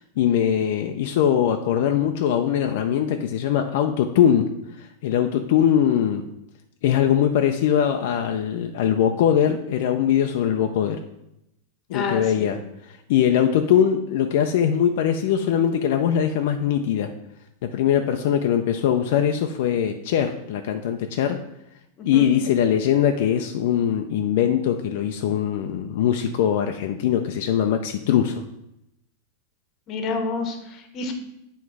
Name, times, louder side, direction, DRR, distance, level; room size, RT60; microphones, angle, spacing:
voice 1, 0.0-4.4 4.8-6.2 6.8-11.0 11.9-17.1 17.6-21.4 22.1-28.4, left 9 dB, 65° left, 5 dB, 0.4 m, -21 dB
voice 2, 11.9-12.5 22.0-22.3 29.9-31.1, left 3 dB, 30° left, 5 dB, 0.9 m, -29 dB
7.9 x 3.1 x 4.7 m, 0.85 s
supercardioid pair, 155°, 0 cm